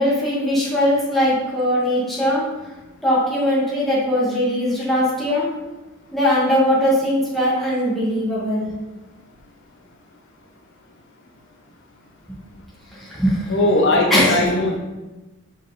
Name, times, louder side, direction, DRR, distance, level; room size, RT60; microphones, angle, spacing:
voice 1, 0.0-2.4 3.0-5.5 6.1-8.7 12.9-13.6 14.1-14.4, left 1 dB, ahead, -8 dB, 1.9 m, -20 dB
voice 2, 13.5-14.8, left 1 dB, 60° left, 0 dB, 0.8 m, -19 dB
5.1 x 5.0 x 4.0 m, 1.1 s
head